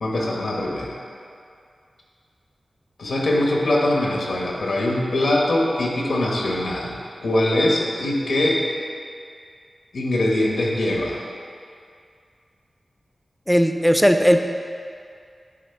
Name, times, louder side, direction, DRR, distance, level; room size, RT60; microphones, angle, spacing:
voice 1, 0.0-1.0 3.0-8.6 9.9-11.2, left 1 dB, 80° left, -2 dB, 1.2 m, -22 dB
voice 2, 13.5-14.4, equal, ahead, 6 dB, 0.4 m, -17 dB
9.3 x 3.4 x 4.5 m, 2.3 s
wide cardioid pair, 80°, 0 cm